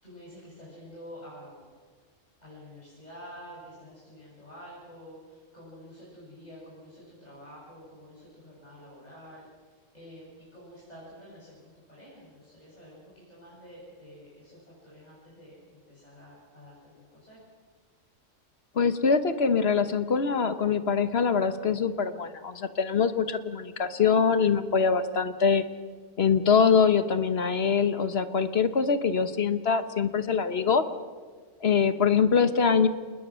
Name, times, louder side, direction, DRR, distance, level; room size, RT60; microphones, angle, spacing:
voice 1, 0.0-1.7 2.4-9.5 9.9-17.4, equal, 35° left, -7 dB, 8.0 m, -48 dB
voice 2, 18.7-25.6 26.2-30.8 31.6-32.9, left 6 dB, 55° left, 11 dB, 1.3 m, -24 dB
28.0 x 20.5 x 6.3 m, 1.5 s
omnidirectional pair, 1.3 m